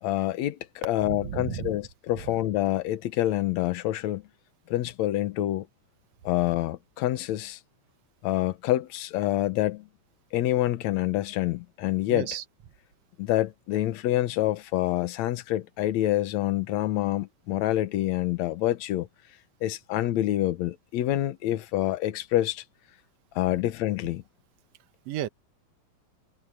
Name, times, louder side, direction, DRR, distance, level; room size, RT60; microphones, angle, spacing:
voice 1, 0.0-4.2 4.7-5.7 6.2-7.6 8.2-9.9 10.3-12.3 13.2-19.1 19.6-22.6 23.4-24.2, left 14 dB, 70° left, 2.2 m, -27 dB
voice 2, 1.0-1.7 2.2-2.3 12.1-12.4 25.1-25.3, right 11 dB, 65° right, 1.9 m, -33 dB
omnidirectional pair, 3.4 m